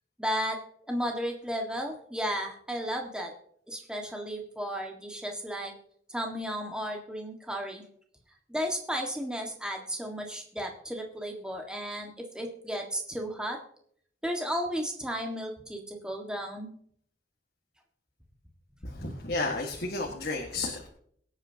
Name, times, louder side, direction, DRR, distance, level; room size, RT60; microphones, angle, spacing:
voice 1, 0.2-0.6 0.9-3.3 3.7-5.7 6.1-7.8 8.5-13.6 14.2-16.7, equal, 5° right, 1 dB, 1.6 m, -34 dB
voice 2, 19.0-20.9, left 2 dB, 65° left, 0 dB, 1.7 m, -32 dB
22.5 x 8.9 x 2.9 m, 0.63 s
head